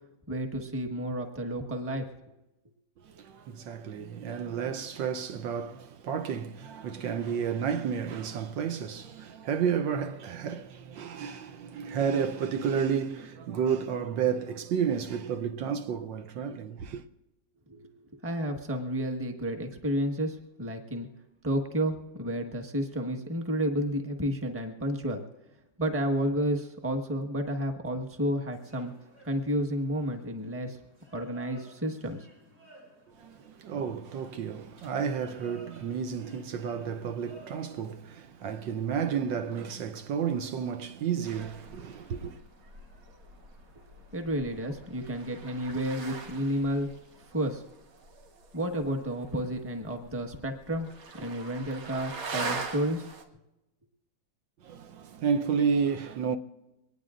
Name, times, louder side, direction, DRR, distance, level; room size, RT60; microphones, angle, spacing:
voice 1, 0.3-2.1 17.7-21.1 21.4-25.2 25.8-28.9 29.2-30.8 31.1-32.2 44.1-46.9 47.3-47.6 48.5-50.9 51.1-53.1, equal, 10° right, 1.1 m, -31 dB
voice 2, 3.0-17.0 33.1-42.4 54.6-56.4, right 7 dB, 75° right, 1.4 m, -31 dB
sound 1, 28.5-47.6, equal, 50° right, 4.4 m, -58 dB
sound 2, 41.2-53.3, right 4 dB, 90° right, 2.2 m, -43 dB
23.0 x 19.0 x 2.5 m
omnidirectional pair, 2.2 m